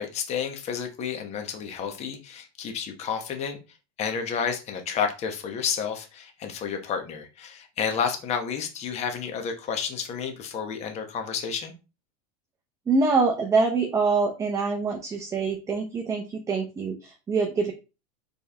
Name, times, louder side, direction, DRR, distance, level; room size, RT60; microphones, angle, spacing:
voice 1, 0.0-3.6 4.0-11.7, left 7 dB, 35° left, 5 dB, 1.0 m, -30 dB
voice 2, 12.9-17.7, right 4 dB, 15° right, 2 dB, 0.6 m, -25 dB
4.6 x 3.4 x 3.4 m, 0.29 s
supercardioid pair, 140°, 20 cm